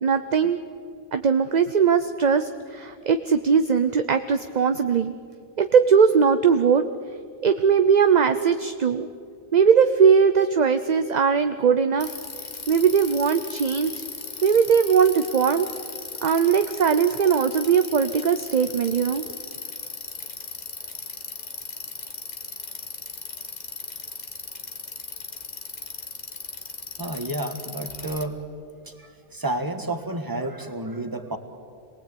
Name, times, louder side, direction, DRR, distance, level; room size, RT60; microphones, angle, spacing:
voice 1, 0.0-0.6 1.1-5.1 5.6-6.8 7.4-9.1 9.5-12.1 12.7-13.9 14.4-15.7 16.2-19.2, right 6 dB, 45° right, 9 dB, 0.8 m, -20 dB
Bicycle, 12.0-28.2, left 3 dB, 40° left, 1.5 m, -37 dB
voice 2, 27.0-28.4 28.8-31.4, right 2 dB, 20° right, 6 dB, 1.7 m, -30 dB
27.0 x 19.5 x 8.5 m, 2.3 s
omnidirectional pair, 1.1 m